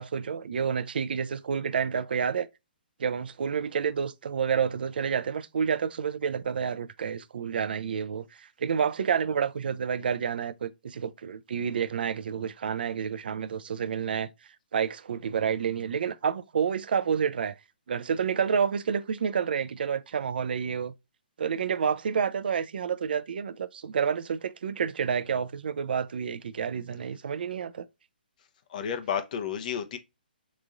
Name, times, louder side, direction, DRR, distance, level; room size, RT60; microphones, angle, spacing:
voice 1, 0.0-2.5 3.0-14.3 14.7-17.6 17.9-20.9 21.4-27.9, right 7 dB, 70° right, 0.4 m, -29 dB
voice 2, 28.7-30.0, left 8 dB, 50° left, 0.7 m, -31 dB
3.6 x 3.0 x 2.5 m
hypercardioid pair, 140°, 5 cm